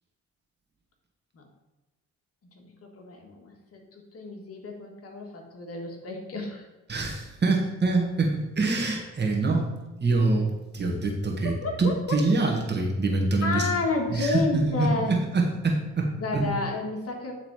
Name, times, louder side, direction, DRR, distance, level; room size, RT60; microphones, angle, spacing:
voice 1, 2.5-6.7 11.6-12.2 13.4-15.1 16.2-17.3, left 3 dB, 50° left, 2 dB, 1.7 m, -31 dB
voice 2, 6.9-9.7 10.0-11.5 11.8-13.7 14.1-16.1 16.3-16.5, right 3 dB, 35° right, 0 dB, 1.7 m, -25 dB
9.1 x 3.8 x 4.7 m, 1.1 s
cardioid pair, 90°, 30 cm